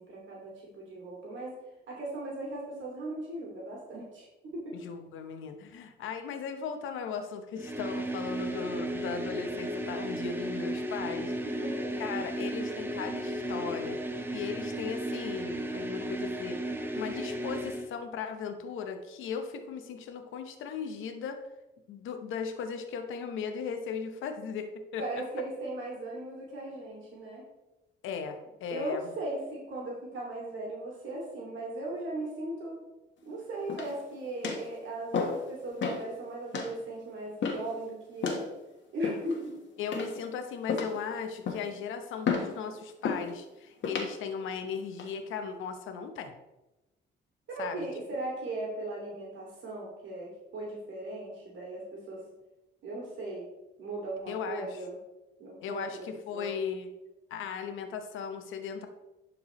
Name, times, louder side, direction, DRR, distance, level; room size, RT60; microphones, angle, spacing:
voice 1, 0.0-1.5 1.9-4.3 4.5-4.7 11.6-11.9 25.0-27.4 28.7-32.8 33.2-38.4 38.9-39.5 47.5-52.2 52.8-53.5 53.8-55.0 55.4-56.1 56.3-56.5, right 2 dB, 70° right, -4 dB, 2.4 m, -38 dB
voice 2, 4.7-11.3 12.0-21.5 21.9-25.2 28.0-29.1 39.8-46.3 47.6-47.9 54.3-54.8 55.6-56.9 57.3-58.9, left 6 dB, 85° left, 6 dB, 1.0 m, -37 dB
sound 1, 7.6-17.9, right 1 dB, 10° right, 0.9 m, -34 dB
sound 2, 33.7-34.1 34.4-34.7 35.1-35.5 35.8-36.1 36.5-36.7 37.4-37.7 38.2-38.5 39.0-39.5 39.9-40.3 40.7-41.0 41.5-41.8 42.3-42.5 43.0-43.3 43.8-44.1 44.7-45.1, left 5 dB, 65° left, 1.3 m, -32 dB
11.5 x 4.6 x 3.1 m, 1.0 s
cardioid pair, 90°, 20 cm